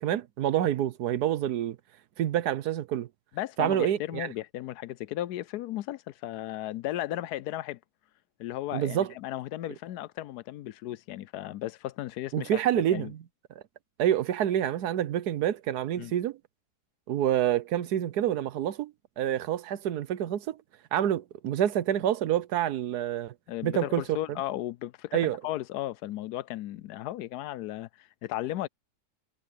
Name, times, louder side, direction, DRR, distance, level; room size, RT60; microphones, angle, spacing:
voice 1, 0.0-1.8 2.2-3.1 3.6-4.3 8.7-9.1 12.3-13.2 14.0-16.4 17.1-20.6 20.9-23.3 23.6-24.0 25.1-25.4, right 11 dB, 75° right, 1.3 m, -27 dB
voice 2, 3.3-7.8 8.4-12.6 12.9-13.1 16.0-16.1 23.5-28.7, left 14 dB, 80° left, 1.1 m, -35 dB
omnidirectional pair, 1.7 m